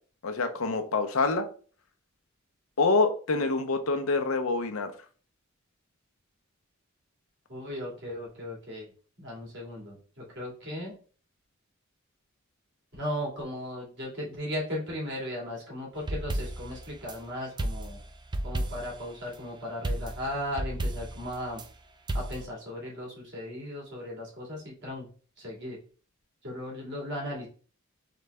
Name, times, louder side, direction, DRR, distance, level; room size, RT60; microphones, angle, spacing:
voice 1, 0.2-1.5 2.8-4.9, left 3 dB, 80° left, 6 dB, 0.7 m, -26 dB
voice 2, 7.5-8.9 9.2-10.0 10.4-11.0 13.0-18.0 18.4-21.6 22.1-25.1 25.4-25.8 26.4-27.5, left 1 dB, 60° right, -3 dB, 2.1 m, -36 dB
sound 1, 16.0-17.2 17.6-19.0 19.8-21.7 22.1-22.4, right 1 dB, 20° right, 0.4 m, -33 dB
3.9 x 3.3 x 3.4 m, 0.40 s
head